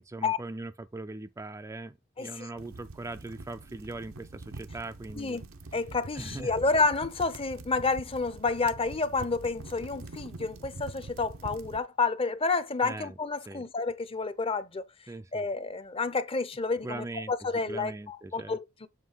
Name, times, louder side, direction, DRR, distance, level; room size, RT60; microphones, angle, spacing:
voice 1, 0.0-5.4 6.2-6.5 12.8-13.2 13.5-13.6 15.1-15.4 16.8-17.3 17.7-18.6, right 2 dB, 15° right, 0.3 m, -40 dB
sound 1, 2.6-11.8, right 2 dB, 85° right, 0.8 m, -45 dB
voice 2, 5.7-14.9 15.3-18.9, left 4 dB, 25° left, 0.6 m, -30 dB
7.4 x 3.1 x 5.4 m
head